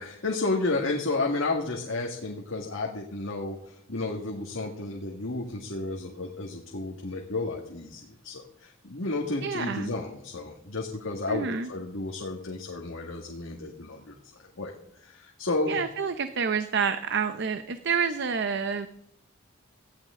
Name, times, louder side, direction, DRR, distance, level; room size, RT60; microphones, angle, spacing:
voice 1, 0.0-14.1 14.6-14.7 15.0-15.8, left 2 dB, 80° left, -1 dB, 1.8 m, -32 dB
voice 2, 9.4-9.9 11.3-11.7 15.7-18.9, right 6 dB, 60° right, 10 dB, 0.7 m, -28 dB
18.0 x 12.0 x 3.7 m, 0.73 s
head